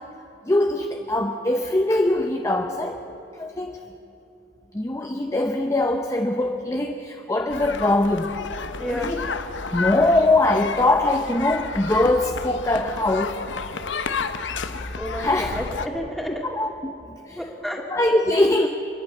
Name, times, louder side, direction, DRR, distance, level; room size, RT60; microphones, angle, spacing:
voice 1, 0.5-3.0 3.4-3.8 4.7-8.3 8.9-9.3 9.7-13.4 15.1-15.6 16.4-16.9 17.3-17.4 17.9-18.7, left 2 dB, 15° left, 4 dB, 0.7 m, -22 dB
sound 1, 7.5-15.9, left 4 dB, 80° left, 0.9 m, -31 dB
voice 2, 8.8-9.1 15.0-16.4 17.4-17.8, equal, ahead, 0 dB, 2.4 m, -31 dB
27.0 x 11.5 x 8.8 m, 2.8 s
head